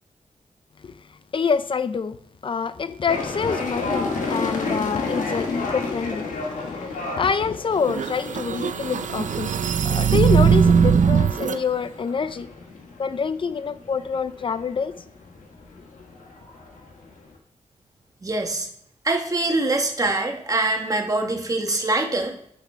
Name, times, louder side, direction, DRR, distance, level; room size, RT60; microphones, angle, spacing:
voice 1, 1.3-2.2 2.4-9.5 9.8-12.5 13.0-14.9, left 5 dB, 40° left, 0.5 m, -26 dB
sound 1, 3.1-17.4, left 3 dB, 90° left, 1.6 m, -32 dB
sound 2, 7.8-11.6, right 6 dB, 80° right, 0.5 m, -19 dB
voice 2, 18.2-18.7 19.0-22.3, right 2 dB, 25° right, 1.2 m, -24 dB
9.2 x 5.8 x 4.7 m
wide cardioid pair, 165°, 13 cm